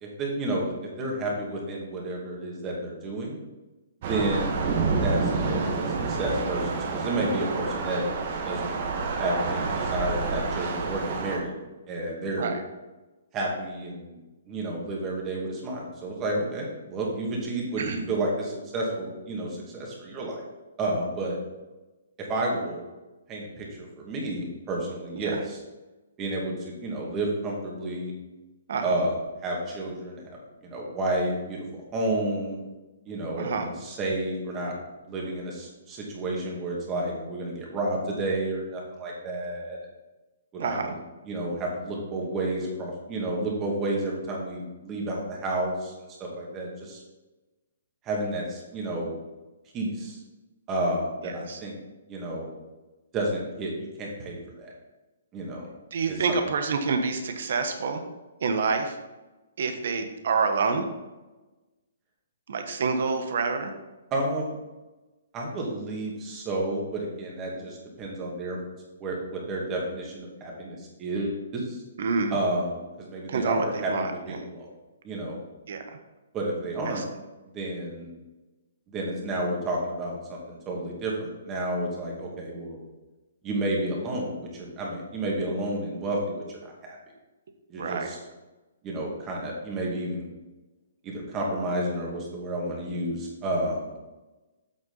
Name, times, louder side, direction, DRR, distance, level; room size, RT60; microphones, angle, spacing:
voice 1, 0.0-3.4 4.0-4.7 5.0-8.0 8.4-8.8 9.2-11.5 11.9-12.5 13.3-14.2 14.5-20.4 20.8-21.4 22.3-22.8 23.3-25.6 26.2-28.1 28.8-32.6 33.1-34.7 35.0-39.8 40.5-41.0 41.3-45.9 46.2-47.0 48.0-49.1 49.7-50.2 50.7-51.8 52.1-52.5 53.1-54.7 55.3-55.7 56.1-56.2 64.1-64.6 65.3-68.6 69.0-71.8 72.3-74.7 75.0-75.4 76.3-77.0 77.5-78.1 78.9-80.2 80.5-82.8 83.4-87.0 87.7-88.2 88.8-90.3 91.0-94.0, right 1 dB, 20° right, -2 dB, 2.3 m, -31 dB
Thunder / Rain, 4.0-11.4, right 4 dB, 45° right, 1.6 m, -28 dB
voice 2, 28.7-29.0 33.4-33.7 40.6-40.9 51.2-51.6 55.9-58.0 58.4-59.0 59.6-60.8 62.5-63.7 72.0-72.4 73.3-74.4 75.7-76.0 76.9-77.0 87.8-88.1, right 4 dB, 65° right, 6 dB, 1.3 m, -28 dB
8.3 x 6.3 x 4.0 m, 1.1 s
hypercardioid pair, 145°, 0 cm